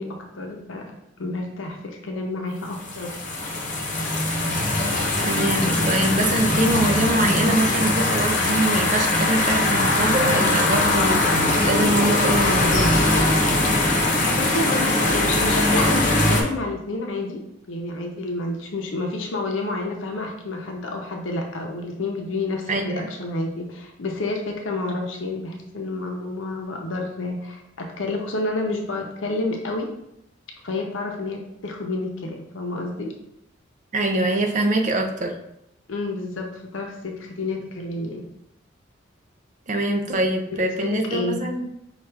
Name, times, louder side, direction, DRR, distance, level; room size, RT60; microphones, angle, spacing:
voice 1, 0.0-3.2 14.4-29.9 30.6-33.1 35.9-38.2 40.8-41.4, left 2 dB, 80° left, 1 dB, 0.7 m, -29 dB
sound 1, 2.8-16.4, left 2 dB, 40° left, 0.8 m, -21 dB
voice 2, 5.2-13.0 22.7-23.1 33.9-35.4 39.7-41.7, right 1 dB, 40° right, 4 dB, 0.5 m, -24 dB
5.7 x 2.4 x 3.3 m, 0.79 s
head